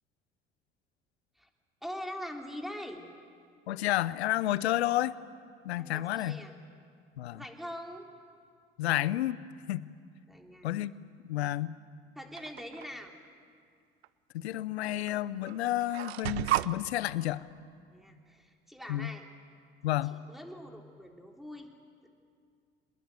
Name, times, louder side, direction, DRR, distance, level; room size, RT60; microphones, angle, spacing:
voice 1, 1.8-3.1 5.7-6.5 7.3-8.0 10.3-10.7 12.1-13.1 17.9-19.2 20.0-21.7 22.0-22.1, equal, ahead, 2 dB, 3.4 m, -43 dB
voice 2, 3.7-5.2 5.6-6.4 7.2-7.4 8.8-9.4 9.7-9.9 10.6-10.9 11.2-11.8 14.3-17.4 18.9-19.1 19.8-20.2, left 14 dB, 80° left, 19 dB, 0.7 m, -30 dB
sound 1, 12.4-12.9 14.0-14.1 15.1-15.2 15.4-16.7, right 15 dB, 80° right, 0.6 m, -32 dB
24.0 x 20.5 x 9.2 m, 2.2 s
figure-of-eight pair, 60°, 32 cm